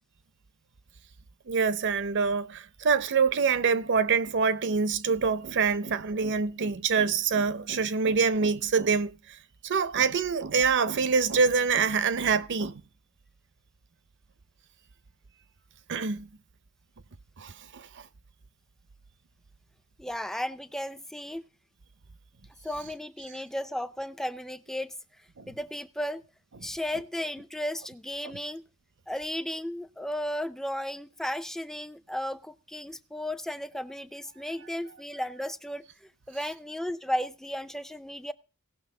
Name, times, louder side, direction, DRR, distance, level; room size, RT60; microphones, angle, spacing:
voice 1, 1.5-9.4 9.6-12.8 15.9-16.3 17.4-18.1 25.4-25.5 28.2-28.4, right 5 dB, 55° right, 0.6 m, -26 dB
voice 2, 20.0-21.4 22.6-25.0 25.5-26.2 26.6-28.6 29.1-35.8 36.3-38.3, left 1 dB, ahead, 0.4 m, -34 dB
18.0 x 6.1 x 3.7 m
head